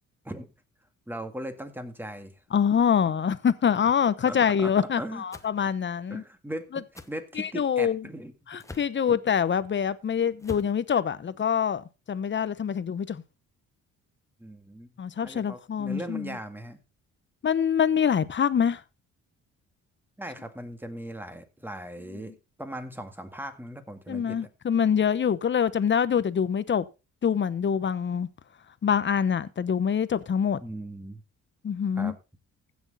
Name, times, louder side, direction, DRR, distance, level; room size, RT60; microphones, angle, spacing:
voice 1, 1.1-2.4 4.3-5.2 5.6-5.7 6.1-8.3 9.1-9.2 14.4-14.9 15.2-16.8 20.2-24.4 30.6-31.2 32.0-32.1, right 1 dB, 5° right, 2.0 m, -38 dB
voice 2, 2.5-6.2 7.4-8.0 8.5-11.8 12.1-13.2 15.0-16.4 17.4-18.8 24.1-26.8 27.2-28.3 28.8-30.6 31.6-32.1, left 7 dB, 40° left, 0.9 m, -25 dB
sound 1, 5.3-5.5 6.9-7.1 8.6-9.0 10.4-10.8, left 2 dB, 10° left, 1.1 m, -42 dB
15.5 x 6.4 x 4.1 m
cardioid pair, 90°, 30 cm